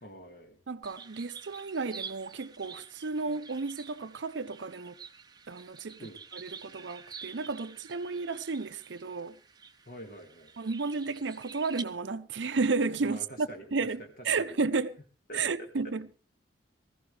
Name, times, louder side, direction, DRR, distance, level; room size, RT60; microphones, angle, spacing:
voice 1, 0.0-0.6 6.0-6.2 9.9-10.5 13.0-13.6 14.4-14.6 15.3-15.9, equal, 45° left, 2.1 m, -46 dB
voice 2, 0.7-5.0 5.5-9.4 10.6-15.0 15.3-16.1, right 4 dB, 70° right, 0.6 m, -33 dB
sound 1, 0.8-11.8, right 6 dB, 20° right, 0.8 m, -48 dB
19.5 x 15.0 x 3.3 m
head